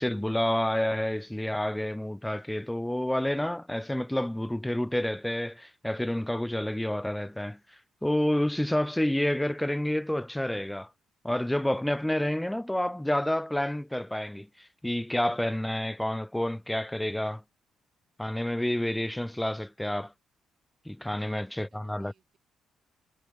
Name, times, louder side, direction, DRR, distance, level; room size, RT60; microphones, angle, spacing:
voice 1, 0.0-7.6 8.0-10.9 11.2-17.4 18.2-20.1 20.9-22.1, left 1 dB, 5° left, 0.4 m, -29 dB
voice 2, 21.2-22.4, right 7 dB, 55° right, 6.2 m, -69 dB
cardioid pair, 90°, 0 cm